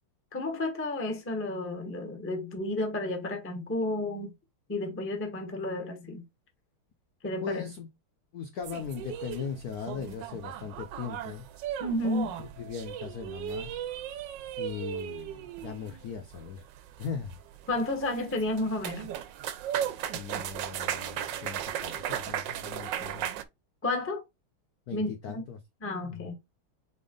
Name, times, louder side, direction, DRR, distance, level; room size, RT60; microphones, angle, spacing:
voice 1, 0.3-4.3 4.7-6.2 7.2-7.7 11.8-12.3 17.7-19.1 23.8-24.2 24.9-25.4 25.8-26.3, left 2 dB, 15° left, 0.4 m, -31 dB
voice 2, 7.4-7.9 8.3-11.5 12.6-13.8 14.6-16.7 17.0-17.4 19.7-19.9 20.1-23.3 24.9-25.6 26.0-26.3, left 7 dB, 75° left, 0.8 m, -39 dB
sound 1, 8.6-23.4, right 10 dB, 75° right, 1.1 m, -37 dB
4.1 x 3.4 x 3.8 m
omnidirectional pair, 2.4 m